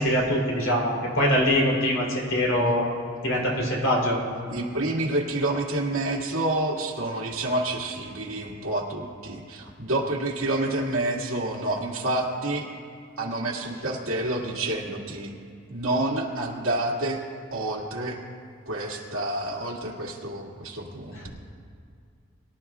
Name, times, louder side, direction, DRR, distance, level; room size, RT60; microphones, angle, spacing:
voice 1, 0.0-2.9 3.2-4.2, equal, 70° left, -3 dB, 3.5 m, -23 dB
voice 2, 4.5-12.7 13.2-15.3 15.7-17.2 17.5-18.2 18.7-21.3, right 2 dB, 85° right, -2 dB, 2.1 m, -28 dB
23.0 x 12.0 x 2.5 m, 2.4 s
head